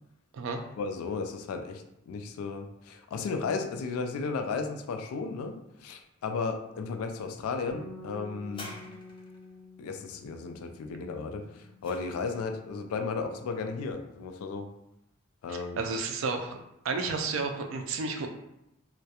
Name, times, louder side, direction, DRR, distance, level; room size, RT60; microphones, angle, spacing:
voice 1, 0.8-8.7 9.8-14.7 15.4-15.8, left 4 dB, 85° left, 6 dB, 0.3 m, -34 dB
Bass guitar, 7.7-13.9, left 2 dB, 65° left, 0.8 m, -50 dB
sound 1, 8.5-9.5 11.2-12.6 13.4-13.5, left 1 dB, 25° left, 0.5 m, -47 dB
voice 2, 15.5-16.6 16.8-18.3, right 4 dB, 60° right, 4 dB, 0.3 m, -32 dB
2.3 x 2.1 x 2.8 m, 0.85 s
head